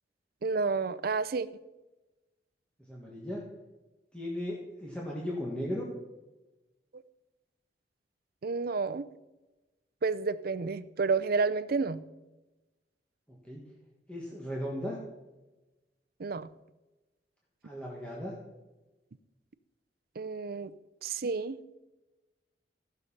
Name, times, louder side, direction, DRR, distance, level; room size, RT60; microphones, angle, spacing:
voice 1, 0.4-1.5 6.9-7.0 8.4-9.0 10.0-12.0 16.2-16.5 20.2-20.7 21.0-21.6, right 4 dB, 60° right, 16 dB, 0.5 m, -30 dB
voice 2, 2.9-3.4 4.1-5.9 13.4-13.6 14.1-15.0 17.6-18.4, equal, 5° left, -4 dB, 1.7 m, -36 dB
15.0 x 6.7 x 5.6 m, 1.1 s
head